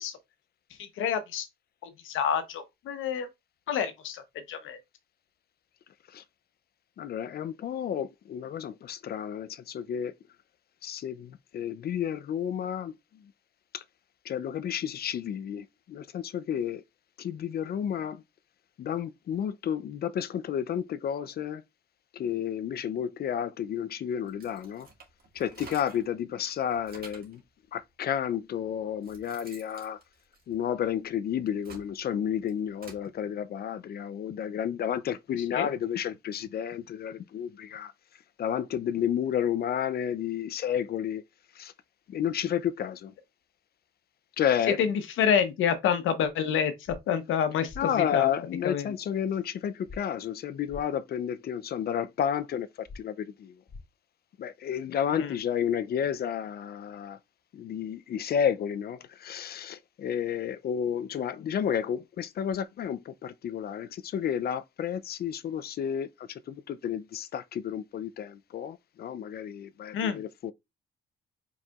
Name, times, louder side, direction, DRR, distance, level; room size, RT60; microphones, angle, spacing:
voice 1, 0.8-1.5 1.8-3.3 3.7-4.8 35.5-35.7 44.7-48.3 48.6-48.9 55.1-55.3 69.9-70.2, left 8 dB, 80° left, 0.9 m, -28 dB
voice 2, 7.0-10.1 10.8-12.9 13.7-13.8 14.3-16.8 17.2-18.2 18.8-21.6 22.1-24.9 25.3-27.4 27.7-30.0 30.5-37.9 38.4-41.2 41.6-41.7 42.1-43.1 44.4-44.8 47.8-53.6 54.4-57.2 57.5-70.5, left 9 dB, 50° left, 0.4 m, -31 dB
sound 1, 24.3-26.1 26.5-27.4 28.2-28.3 28.8-30.9 31.4-33.1, right 4 dB, 50° right, 1.8 m, -51 dB
sound 2, 46.8-47.0 47.7-47.8 49.8-50.0 50.7-50.8 52.9-53.0 53.7-53.8, left 3 dB, 15° left, 2.4 m, -42 dB
4.9 x 4.1 x 2.3 m
cardioid pair, 90°, 20 cm